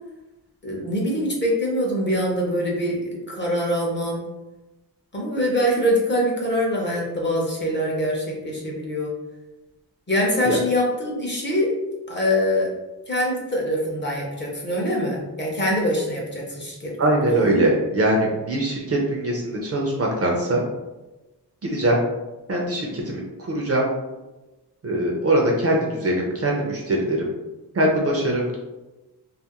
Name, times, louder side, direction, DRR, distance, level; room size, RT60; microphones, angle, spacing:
voice 1, 0.6-4.2 5.1-9.1 10.1-11.7 12.1-12.7 13.1-16.9 17.3-17.6, equal, 30° left, -2 dB, 0.5 m, -24 dB
voice 2, 17.0-20.6 21.6-22.0 22.5-23.9 24.8-27.3 27.7-28.6, right 1 dB, 40° right, -2 dB, 0.4 m, -22 dB
2.4 x 2.4 x 2.8 m, 1.1 s
wide cardioid pair, 170°, 41 cm